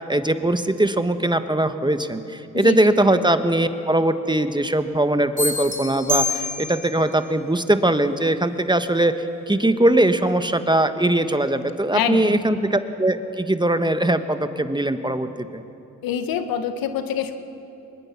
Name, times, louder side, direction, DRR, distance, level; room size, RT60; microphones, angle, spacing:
voice 1, 0.0-15.6, right 1 dB, 15° right, 9 dB, 1.3 m, -21 dB
sound 1, 5.4-7.0, left 2 dB, 20° left, 4.7 m, -26 dB
voice 2, 11.9-12.4 16.0-17.3, left 9 dB, 75° left, 8 dB, 1.5 m, -25 dB
23.5 x 21.0 x 6.0 m, 2.9 s
supercardioid pair, 50°, 35 cm